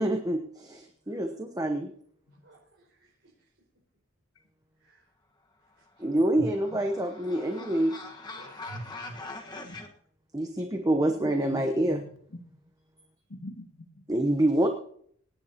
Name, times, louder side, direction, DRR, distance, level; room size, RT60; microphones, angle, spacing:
voice 1, 0.0-1.9 6.0-7.9 10.3-12.0 14.1-14.7, right 1 dB, 15° right, 4 dB, 0.9 m, -26 dB
voice 2, 2.4-3.5 4.8-5.1 6.0-6.1 8.3-8.7, right 2 dB, 65° right, -5 dB, 5.3 m, -59 dB
sound 1, 6.0-9.9, left 2 dB, 20° left, 1.4 m, -43 dB
voice 3, 8.7-9.1 9.6-9.8 11.2-12.4 13.3-14.0, left 1 dB, 80° left, 3 dB, 2.0 m, -43 dB
26.5 x 9.5 x 2.9 m, 0.62 s
head